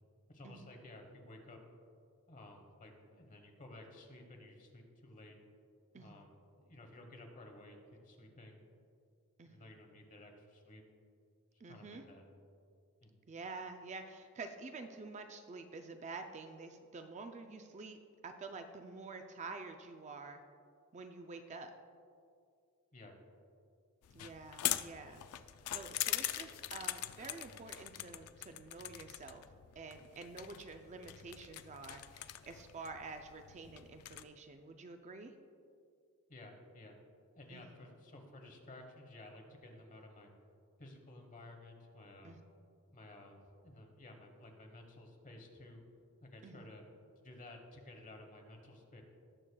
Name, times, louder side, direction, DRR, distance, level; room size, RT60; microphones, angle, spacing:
voice 1, 0.3-1.6 2.3-5.4 6.0-7.8 8.0-8.6 9.4-10.8 11.7-12.2 13.0-13.2 22.9-23.2 24.2-24.3 36.3-37.0 37.3-40.3 40.8-42.4 42.9-45.8 46.2-46.8 47.2-49.0, left 1 dB, 35° left, 3 dB, 1.2 m, -54 dB
voice 2, 9.4-9.7 11.6-12.0 13.3-20.4 20.9-21.7 24.1-25.2 25.7-29.4 29.8-35.3 37.5-37.6 42.2-42.4 46.4-46.7, right 3 dB, 30° right, 6 dB, 0.4 m, -48 dB
sound 1, 24.0-34.2, left 13 dB, 70° left, 0.4 m, -42 dB
18.5 x 6.5 x 2.3 m, 2.3 s
head